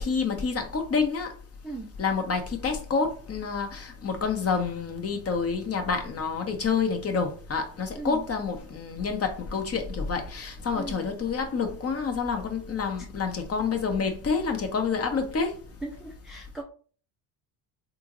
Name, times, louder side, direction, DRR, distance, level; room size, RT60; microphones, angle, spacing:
voice 1, 0.0-1.3 2.0-15.6, left 5 dB, 30° left, 0.9 m, -28 dB
voice 2, 15.8-16.6, right 3 dB, ahead, 0.3 m, -38 dB
3.6 x 2.6 x 2.9 m
supercardioid pair, 90°, 48 cm